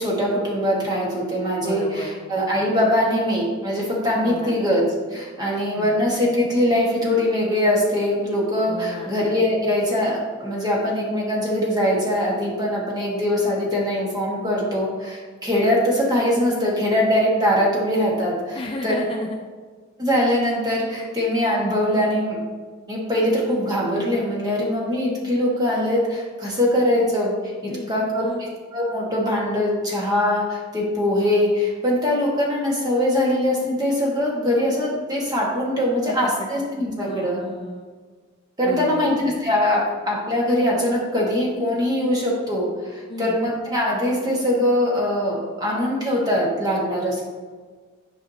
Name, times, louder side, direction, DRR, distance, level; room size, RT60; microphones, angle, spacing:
voice 1, 0.0-4.8 5.1-18.9 20.0-22.4 22.9-37.4 38.6-47.2, left 1 dB, 20° right, -4 dB, 1.5 m, -22 dB
voice 2, 1.6-2.1 4.2-4.5 5.8-6.0 8.7-9.1 18.5-19.4 27.7-28.4 36.1-36.5 37.0-37.9 38.6-39.1 43.1-43.4, left 2 dB, 25° left, 1 dB, 0.4 m, -33 dB
10.5 x 4.8 x 2.8 m, 1.5 s
head